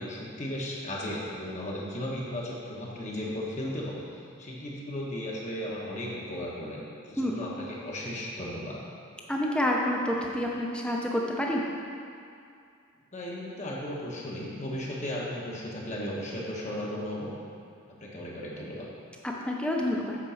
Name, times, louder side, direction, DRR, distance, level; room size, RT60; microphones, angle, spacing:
voice 1, 0.0-8.8 13.1-17.3 17.9-18.9, left 1 dB, 35° left, -4 dB, 1.2 m, -35 dB
voice 2, 9.3-11.6 19.5-20.2, left 1 dB, 5° left, -2 dB, 0.7 m, -28 dB
8.5 x 4.6 x 6.3 m, 2.4 s
head